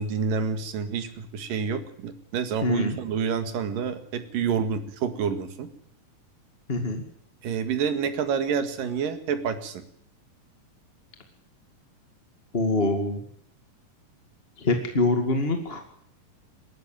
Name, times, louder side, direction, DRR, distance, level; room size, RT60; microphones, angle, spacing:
voice 1, 0.0-5.7 7.4-9.8, right 6 dB, 80° right, 9 dB, 3.6 m, -28 dB
voice 2, 2.6-3.0 6.7-7.0 12.5-13.2 14.6-15.8, left 2 dB, 20° left, 5 dB, 1.7 m, -24 dB
20.5 x 14.5 x 8.9 m, 0.67 s
omnidirectional pair, 3.9 m